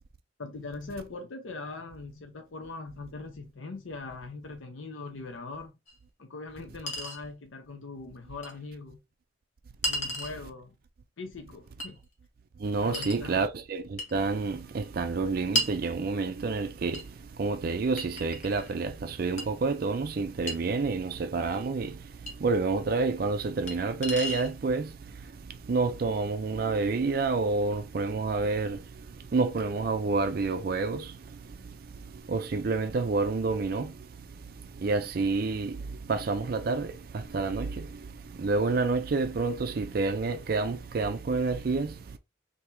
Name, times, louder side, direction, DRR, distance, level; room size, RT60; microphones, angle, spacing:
voice 1, 0.4-5.8 6.2-9.0 9.8-10.8 11.2-12.0 12.8-13.5, left 3 dB, 80° left, 0.7 m, -41 dB
Chink clink, 5.9-6.0 6.9-7.2 8.4-8.5 9.8-10.4 11.8-11.9 12.9-13.2 14.0-14.2 15.6-15.8 16.9-17.1 18.0-18.7 19.4-19.5 20.5-20.6 22.3-22.4 23.7-23.8 24.0-24.5, left 1 dB, 35° left, 0.9 m, -32 dB
voice 2, 12.6-17.0 17.4-21.9 22.4-24.9 25.7-28.8 29.3-31.1 32.3-33.9 34.8-35.8 36.1-37.9 38.4-41.9, right 3 dB, 50° right, 0.4 m, -28 dB
3.3 x 2.8 x 4.4 m
head